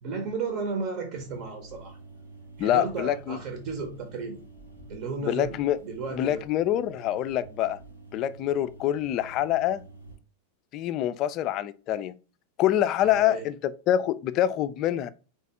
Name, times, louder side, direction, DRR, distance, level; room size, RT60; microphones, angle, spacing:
voice 1, 0.0-2.0 2.6-4.4 4.9-5.6 5.8-6.4 13.0-13.4, right 4 dB, 45° right, 0.8 m, -34 dB
sound 1, 1.1-10.1, right 3 dB, 85° right, 1.3 m, -48 dB
voice 2, 2.6-3.4 5.2-5.8 6.1-7.8 8.1-9.8 10.7-12.1 12.6-13.5 13.9-15.1, left 12 dB, 35° left, 0.3 m, -25 dB
4.2 x 3.1 x 3.4 m
figure-of-eight pair, 90°, 0 cm